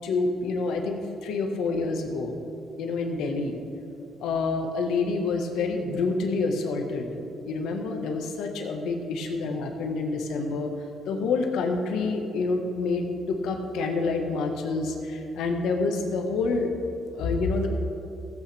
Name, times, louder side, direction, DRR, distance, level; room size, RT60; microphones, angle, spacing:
voice 1, 0.0-2.4 2.8-3.6 4.2-7.1 7.4-10.7 11.1-16.7 17.1-17.7, left 3 dB, 85° left, 2 dB, 1.3 m, -27 dB
16.0 x 8.4 x 3.4 m, 2.8 s
cardioid pair, 90°, 0 cm